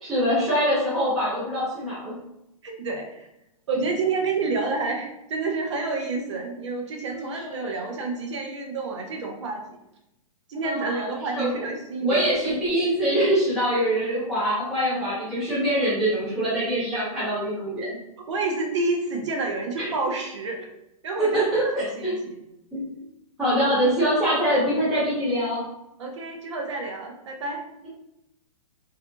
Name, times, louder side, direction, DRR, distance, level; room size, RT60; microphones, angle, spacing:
voice 1, 0.0-2.2 7.1-7.7 10.6-11.6 12.0-17.9 19.8-19.9 21.2-22.1 22.7-22.8 23.4-25.6, equal, ahead, -12 dB, 0.4 m, -24 dB
voice 2, 2.6-3.3 3.7-9.6 10.5-12.2 18.3-20.7 21.0-22.4 26.0-27.6, right 3 dB, 50° right, 1 dB, 0.6 m, -29 dB
2.7 x 2.6 x 2.2 m, 0.86 s
hypercardioid pair, 175°, 19 cm